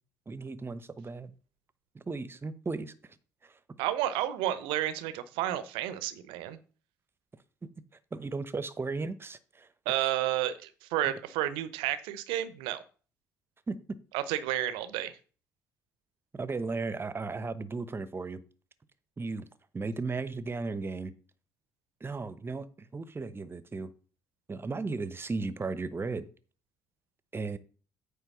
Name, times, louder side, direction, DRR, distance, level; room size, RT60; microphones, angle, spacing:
voice 1, 0.3-1.3 1.9-2.9 3.4-3.6 7.6-7.7 8.1-9.7 13.7-13.8 16.3-18.4 19.2-19.5 19.7-21.1 22.0-23.9 24.5-26.3 27.3-27.6, right 3 dB, 25° right, 0.9 m, -35 dB
voice 2, 3.8-6.6 9.9-12.8 14.1-15.2, right 13 dB, 70° right, 0.8 m, -31 dB
9.1 x 3.4 x 6.1 m
figure-of-eight pair, 50°, 9 cm